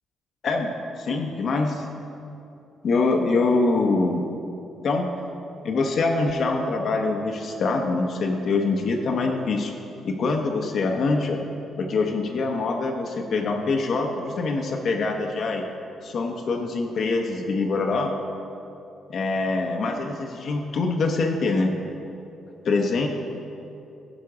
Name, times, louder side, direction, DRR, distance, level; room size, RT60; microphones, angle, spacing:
voice 1, 0.4-1.8 2.8-4.3 4.8-5.1 5.6-9.7 10.0-11.4 11.8-15.6 16.0-18.1 19.1-21.7 22.6-23.1, left 3 dB, 60° left, 2 dB, 0.8 m, -24 dB
11.5 x 5.1 x 4.8 m, 2.7 s
cardioid pair, 90°, 0 cm